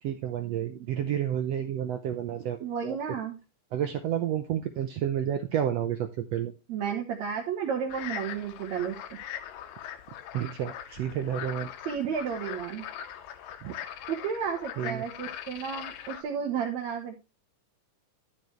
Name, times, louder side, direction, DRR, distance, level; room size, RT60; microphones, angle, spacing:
voice 1, 0.0-3.0 3.7-6.5 10.3-11.7 13.6-13.7 14.8-15.1, right 10 dB, 80° right, 7 dB, 1.5 m, -30 dB
voice 2, 2.6-3.4 6.7-9.0 11.9-12.9 14.1-17.2, right 7 dB, 65° right, -1 dB, 2.3 m, -32 dB
sound 1, 7.9-16.2, left 10 dB, 85° left, 2.5 m, -41 dB
12.0 x 6.6 x 3.1 m, 0.27 s
omnidirectional pair, 3.8 m